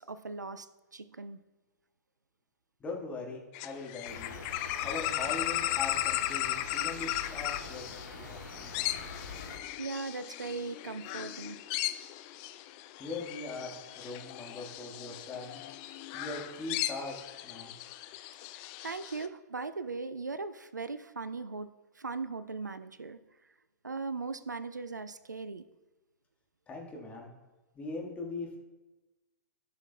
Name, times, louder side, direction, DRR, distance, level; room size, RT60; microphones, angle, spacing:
voice 1, 0.0-1.4 9.4-9.5 9.8-11.6 18.5-21.7 22.0-23.2 23.8-25.6, right 4 dB, 80° right, 14 dB, 0.4 m, -39 dB
voice 2, 2.8-4.4 4.8-9.2 13.0-15.6 16.1-17.7 26.7-27.3 27.7-28.6, left 3 dB, 15° left, -2 dB, 1.6 m, -41 dB
sound 1, 3.5-19.3, left 14 dB, 30° left, 0.4 m, -37 dB
sound 2, 4.1-9.6, left 3 dB, 80° left, 1.6 m, -45 dB
15.0 x 6.2 x 2.2 m, 1.1 s
figure-of-eight pair, 110°, 10 cm